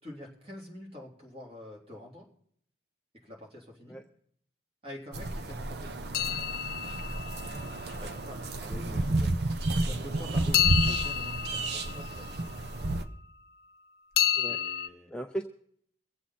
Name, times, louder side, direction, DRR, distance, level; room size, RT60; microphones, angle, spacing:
voice 1, 0.0-2.3 3.2-4.0 4.8-6.0 7.9-8.5 9.8-12.6 14.3-15.1, left 1 dB, 30° right, -2 dB, 3.3 m, -46 dB
sound 1, 5.1-13.0, right 2 dB, 60° right, 0.8 m, -31 dB
sound 2, 6.1-8.2 10.5-12.9 14.2-14.9, left 11 dB, 55° left, 0.6 m, -30 dB
voice 2, 8.6-9.3 14.3-14.6 15.1-15.4, right 1 dB, 5° left, 3 dB, 0.5 m, -38 dB
23.0 x 7.9 x 4.3 m, 0.64 s
head